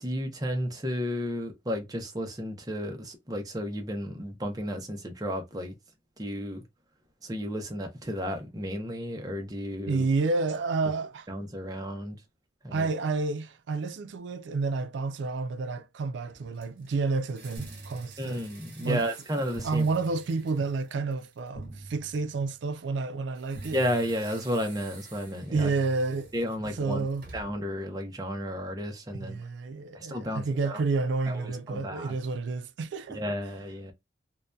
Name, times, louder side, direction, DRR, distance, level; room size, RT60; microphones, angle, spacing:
voice 1, 0.0-5.7 6.2-6.6 7.2-10.1 11.3-12.2 12.6-12.9 18.2-19.9 23.7-25.7 26.3-27.0 27.3-29.4 29.9-30.8 31.3-32.1 33.1-33.9, equal, 20° right, 0.5 m, -33 dB
voice 2, 9.9-11.3 12.7-18.4 18.8-19.0 19.6-23.8 25.5-26.3 26.7-27.3 29.1-33.2, right 3 dB, 85° right, 0.4 m, -30 dB
sound 1, 16.3-21.6 23.3-27.7, right 3 dB, 55° right, 1.2 m, -51 dB
sound 2, 17.6-18.7 19.6-20.7 21.6-22.7 23.6-24.7 25.6-26.7, right 1 dB, 65° left, 0.7 m, -46 dB
2.6 x 2.1 x 2.2 m
head